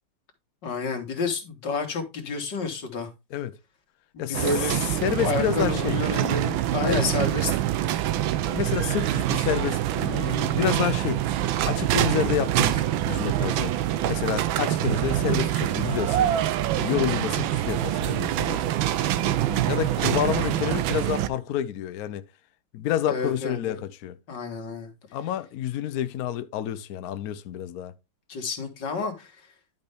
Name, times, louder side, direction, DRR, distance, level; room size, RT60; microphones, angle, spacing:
voice 1, 0.6-3.1 4.1-4.8 5.2-7.5 23.1-23.8 24.3-24.9 28.3-29.5, left 4 dB, 55° left, 2.3 m, -30 dB
sound 1, 4.3-21.3, right 12 dB, 75° right, 1.3 m, -25 dB
voice 2, 5.0-6.0 6.8-7.1 8.4-13.8 14.1-16.3 16.8-18.6 19.2-22.2 22.7-24.2 25.1-27.9, left 11 dB, 85° left, 0.8 m, -29 dB
11.0 x 5.5 x 3.5 m
omnidirectional pair, 2.4 m